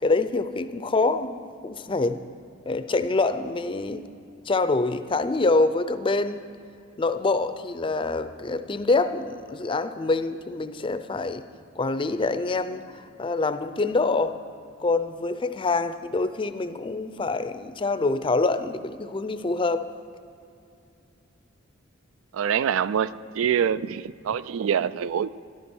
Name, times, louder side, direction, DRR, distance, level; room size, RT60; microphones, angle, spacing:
voice 1, 0.0-2.2 2.7-4.0 4.5-6.4 7.0-11.4 11.8-14.4 14.8-19.9, left 3 dB, 25° left, 11 dB, 0.5 m, -25 dB
voice 2, 22.3-25.3, right 8 dB, 80° right, 16 dB, 0.3 m, -25 dB
13.0 x 12.0 x 4.5 m, 2.5 s
head